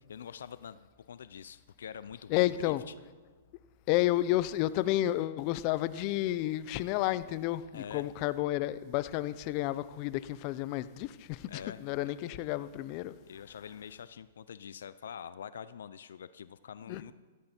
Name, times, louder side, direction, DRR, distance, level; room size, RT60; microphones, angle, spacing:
voice 1, 0.1-2.9 7.7-8.1 11.5-11.9 13.3-17.1, left 8 dB, 80° left, 0.5 m, -45 dB
voice 2, 2.3-2.8 3.9-13.1 16.9-17.1, left 15 dB, 35° left, 0.5 m, -31 dB
16.0 x 14.5 x 4.4 m
hypercardioid pair, 155°, 0 cm